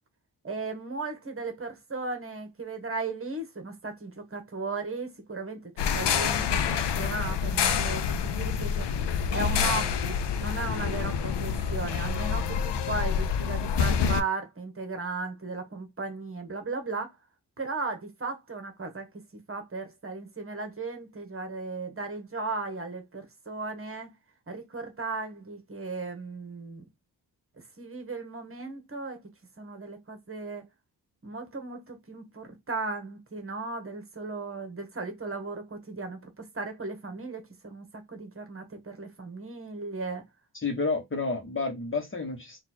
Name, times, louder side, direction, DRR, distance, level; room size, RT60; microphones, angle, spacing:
voice 1, 0.4-5.6 5.9-8.9 9.3-17.1 17.6-19.1 19.5-24.1 24.5-26.9 27.8-29.2 29.6-30.7 31.2-40.2, right 3 dB, 30° right, 1.4 m, -36 dB
sound 1, 5.8-14.2, left 7 dB, 80° left, 0.7 m, -27 dB
voice 2, 40.6-42.6, left 3 dB, 30° left, 1.2 m, -30 dB
4.2 x 2.5 x 4.4 m
wide cardioid pair, 125°, 41 cm